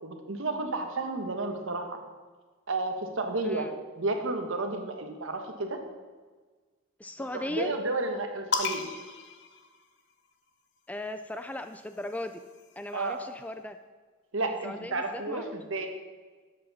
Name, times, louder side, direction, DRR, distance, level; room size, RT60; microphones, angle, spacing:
voice 1, 0.0-2.0 2.7-3.7 4.0-5.8 7.3-8.8 12.9-13.2 14.3-15.9, right 2 dB, 65° right, 5 dB, 1.2 m, -32 dB
voice 2, 7.0-7.7 10.9-12.4 12.8-13.8 14.4-15.5, left 1 dB, 5° left, 8 dB, 0.3 m, -37 dB
sound 1, 8.5-10.3 11.4-13.1, left 4 dB, 55° left, 0.9 m, -36 dB
12.0 x 7.8 x 4.1 m, 1.4 s
head